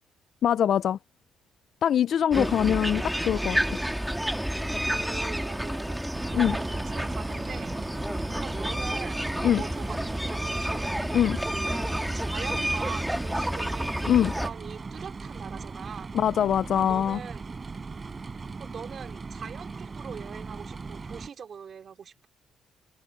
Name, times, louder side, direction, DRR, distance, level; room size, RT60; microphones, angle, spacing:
voice 1, 0.4-1.0 1.8-3.8 6.3-6.6 9.4-9.6 11.1-11.4 14.1-14.3 16.1-17.2, left 9 dB, 65° left, 0.5 m, -23 dB
sound 1, 2.3-14.5, equal, 5° right, 1.9 m, -30 dB
voice 2, 4.8-7.7 8.4-9.2 9.6-11.0 11.5-11.9 12.1-16.1 16.7-17.5 18.6-22.3, right 7 dB, 50° right, 3.6 m, -42 dB
sound 2, 6.1-21.3, right 4 dB, 30° right, 5.2 m, -39 dB
cardioid pair, 90°, 0 cm